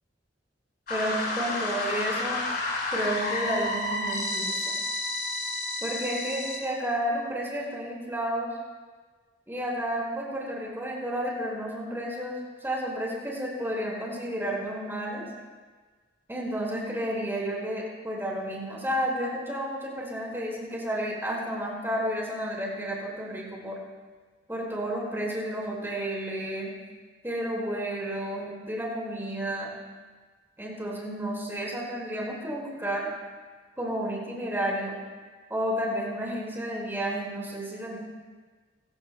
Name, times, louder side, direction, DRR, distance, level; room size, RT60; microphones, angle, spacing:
sound 1, 0.9-6.6, left 2 dB, 55° left, 4.6 m, -30 dB
voice 1, 0.9-2.4 2.9-4.7 5.8-8.5 9.5-15.3 16.3-23.8 24.5-26.7 27.2-29.7 30.6-33.1 33.8-35.0 35.5-38.0, equal, 15° right, -4 dB, 5.2 m, -31 dB
29.5 x 16.0 x 2.3 m, 1.4 s
head